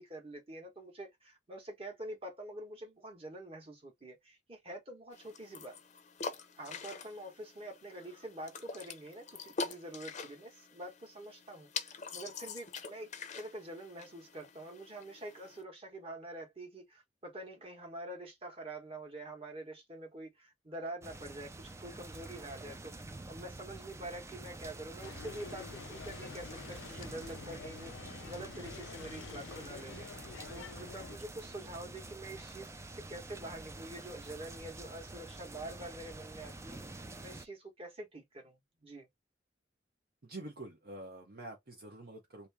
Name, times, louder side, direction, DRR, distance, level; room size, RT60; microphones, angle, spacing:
voice 1, 0.0-5.8 6.6-13.1 13.4-30.1 30.5-39.1, right 1 dB, 30° right, 1.3 m, -46 dB
sound 1, 5.1-15.6, left 4 dB, 40° left, 0.6 m, -45 dB
sound 2, 21.0-37.4, right 2 dB, 15° right, 0.4 m, -48 dB
sound 3, 25.0-31.2, left 6 dB, 85° left, 0.4 m, -48 dB
voice 2, 40.2-42.5, right 2 dB, 55° right, 0.8 m, -47 dB
3.0 x 2.7 x 3.4 m
head